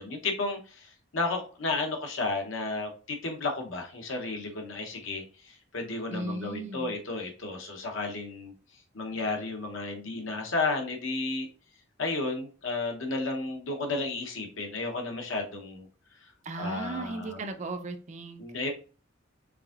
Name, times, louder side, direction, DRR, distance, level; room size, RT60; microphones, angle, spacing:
voice 1, 0.0-8.5 8.9-11.5 12.0-15.9 16.5-17.4 18.4-18.7, left 3 dB, 70° left, 3 dB, 0.9 m, -33 dB
voice 2, 6.1-6.9 16.4-18.4, right 2 dB, 35° right, 7 dB, 0.4 m, -36 dB
4.7 x 3.5 x 2.4 m, 0.38 s
head